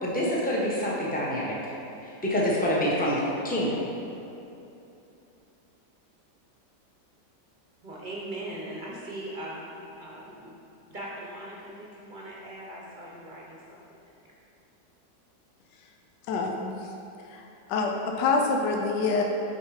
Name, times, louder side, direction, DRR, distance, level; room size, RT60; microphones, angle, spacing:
voice 1, 0.0-1.7 2.0-3.7, equal, 5° left, -5 dB, 0.8 m, -27 dB
voice 2, 7.8-10.5 10.9-14.3, right 1 dB, 35° right, -4 dB, 0.8 m, -40 dB
voice 3, 16.3-16.7 17.3-17.9 18.2-19.2, left 4 dB, 75° left, 1 dB, 1.3 m, -26 dB
6.3 x 5.0 x 4.9 m, 2.8 s
omnidirectional pair, 1.9 m